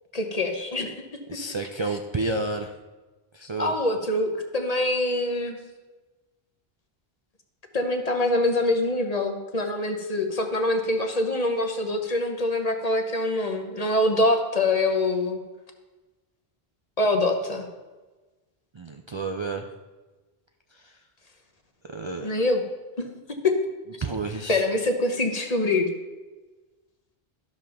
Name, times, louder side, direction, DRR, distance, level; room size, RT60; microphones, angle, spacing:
voice 1, 0.1-1.4 3.4-5.6 7.7-15.4 17.0-17.7 22.2-22.6 23.0-23.6 24.5-25.9, left 2 dB, 40° left, 4 dB, 1.1 m, -25 dB
voice 2, 1.3-2.7 3.3-3.7 18.7-19.7 20.7-21.0 21.9-22.3 24.0-24.6, right 3 dB, 40° right, 4 dB, 0.4 m, -30 dB
12.0 x 5.3 x 5.9 m, 1.2 s
omnidirectional pair, 1.0 m